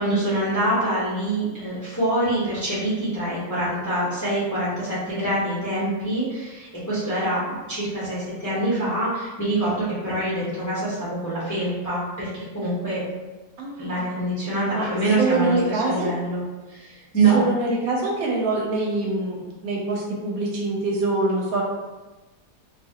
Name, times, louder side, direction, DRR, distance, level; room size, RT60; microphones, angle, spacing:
voice 1, 0.0-13.0 13.8-16.4 16.7-17.5, right 2 dB, 20° left, -10 dB, 0.6 m, -25 dB
voice 2, 13.6-14.1 14.7-14.9 15.2-16.1 17.3-21.6, right 2 dB, 75° right, -1 dB, 1.0 m, -24 dB
2.6 x 2.4 x 2.7 m, 1.2 s
omnidirectional pair, 1.6 m